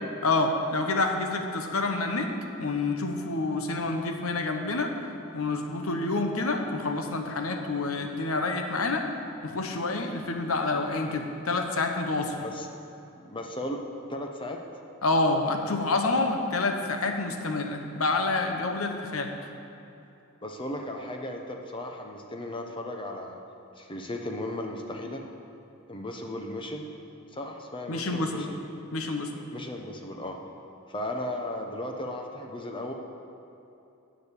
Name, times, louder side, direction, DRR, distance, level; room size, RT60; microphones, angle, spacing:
voice 1, 0.2-2.3 2.6-4.9 5.3-9.1 9.4-12.4 15.0-19.3 27.9-28.5 28.9-29.3, left 3 dB, 75° left, 4 dB, 1.2 m, -28 dB
voice 2, 13.2-13.8 14.1-14.6 20.4-23.4 23.8-25.2 25.9-26.9 27.3-28.5 29.5-30.4 30.9-32.9, left 1 dB, 25° left, 2 dB, 0.9 m, -36 dB
10.0 x 6.8 x 8.3 m, 2.8 s
head